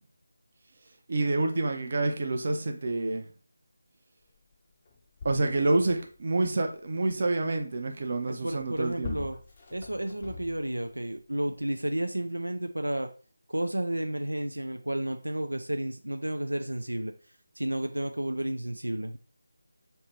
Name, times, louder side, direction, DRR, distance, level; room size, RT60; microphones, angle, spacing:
voice 1, 1.1-3.2 5.2-9.3, right 2 dB, 40° right, 0.6 m, -28 dB
sound 1, 4.5-4.6 4.9-6.2 8.5-10.9 11.6-11.7, left 5 dB, 25° left, 0.6 m, -43 dB
voice 2, 8.3-9.4 9.7-13.1 13.5-17.1 17.6-19.2, right 1 dB, 75° right, 0.4 m, -32 dB
3.3 x 2.8 x 4.2 m
figure-of-eight pair, 160°, 0 cm